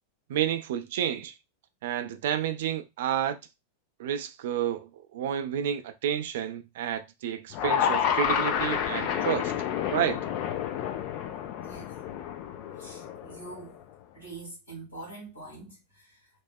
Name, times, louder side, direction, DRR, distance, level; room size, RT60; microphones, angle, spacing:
voice 1, 0.3-1.3 1.8-3.4 4.0-9.5 9.9-10.2, right 10 dB, 55° right, 0.3 m, -30 dB
sound 1, 7.5-13.8, left 9 dB, 40° left, 0.3 m, -29 dB
voice 2, 11.6-11.9 12.8-13.8 14.1-16.3, right 2 dB, 70° left, 1.3 m, -44 dB
3.0 x 2.0 x 2.2 m
figure-of-eight pair, 90°, 0 cm